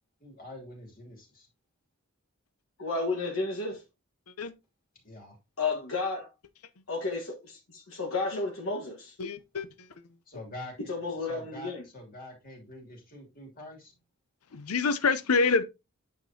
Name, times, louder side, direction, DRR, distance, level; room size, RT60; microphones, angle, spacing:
voice 1, 0.2-1.5 5.0-5.4 10.3-10.9 11.3-13.9, left 1 dB, 40° left, 2.7 m, -45 dB
voice 2, 2.8-3.8 5.6-6.3 6.9-9.1 10.9-11.9, left 3 dB, 65° left, 1.4 m, -32 dB
voice 3, 9.2-9.7 14.5-15.6, left 4 dB, 85° left, 0.7 m, -26 dB
8.9 x 5.9 x 2.8 m
head